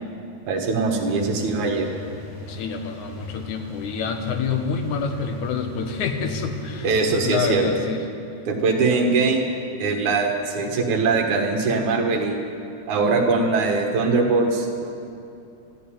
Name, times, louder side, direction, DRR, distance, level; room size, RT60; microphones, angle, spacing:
voice 1, 0.5-1.9 6.8-7.7 8.5-9.4 9.8-12.4 12.9-14.8, right 3 dB, 85° right, 2 dB, 3.0 m, -21 dB
sound 1, 1.0-7.6, left 2 dB, 5° right, 2.9 m, -37 dB
voice 2, 2.5-6.9 7.2-8.0, left 5 dB, 85° left, 5 dB, 2.5 m, -27 dB
13.0 x 12.0 x 8.7 m, 2.5 s
omnidirectional pair, 3.4 m